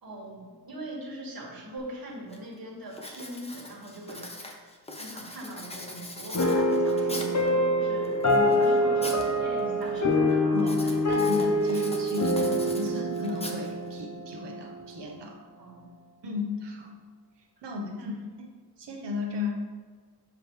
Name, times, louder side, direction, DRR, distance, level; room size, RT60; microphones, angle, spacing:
voice 1, 0.0-4.3 5.0-7.3 7.8-10.4 15.6-16.0 17.6-18.2, right 1 dB, 60° right, -4 dB, 1.9 m, -41 dB
Writing, 1.8-1.9 2.3-2.6 2.9-7.5 8.0-9.3 9.6-10.0 10.6-14.0, left 1 dB, 15° left, 0.8 m, -41 dB
sound 1, 6.3-14.9, left 1 dB, 40° left, 0.8 m, -25 dB
voice 2, 10.4-15.4 16.2-17.0 17.6-18.1 18.4-18.5 18.8-19.6, left 4 dB, 85° right, 1 dB, 1.0 m, -35 dB
7.0 x 5.0 x 3.1 m, 1.5 s
wide cardioid pair, 80°, 41 cm